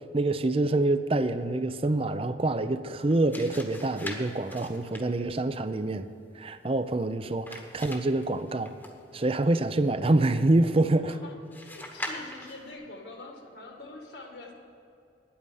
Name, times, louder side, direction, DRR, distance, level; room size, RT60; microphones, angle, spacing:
voice 1, 0.1-6.1 6.4-8.7 9.1-11.1, right 2 dB, 30° right, 11 dB, 0.5 m, -26 dB
sound 1, 3.0-9.3 11.5-12.7, left 1 dB, 10° left, 1.2 m, -43 dB
voice 2, 11.0-11.3 11.6-14.5, left 2 dB, 70° left, 2 dB, 2.1 m, -44 dB
9.8 x 8.7 x 9.2 m, 2.6 s
head